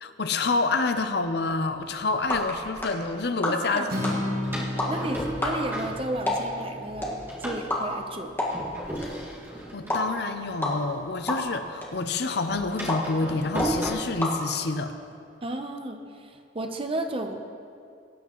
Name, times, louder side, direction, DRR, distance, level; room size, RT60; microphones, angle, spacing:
voice 1, 0.0-4.1 9.7-14.9, left 3 dB, 60° left, 8 dB, 0.6 m, -28 dB
Door, 0.9-1.0 1.7-2.8 4.0-6.6 6.9-11.4 11.7-13.9, right 1 dB, 10° right, 2.0 m, -35 dB
sound 1, 1.8-15.1, left 1 dB, 15° left, 1.7 m, -33 dB
voice 2, 3.5-4.0 4.9-8.3 15.4-17.5, right 1 dB, 30° right, 5 dB, 0.8 m, -33 dB
Acoustic guitar, 3.9-8.1, left 1 dB, 55° right, 1.9 m, -34 dB
19.0 x 9.3 x 3.1 m, 2.4 s
head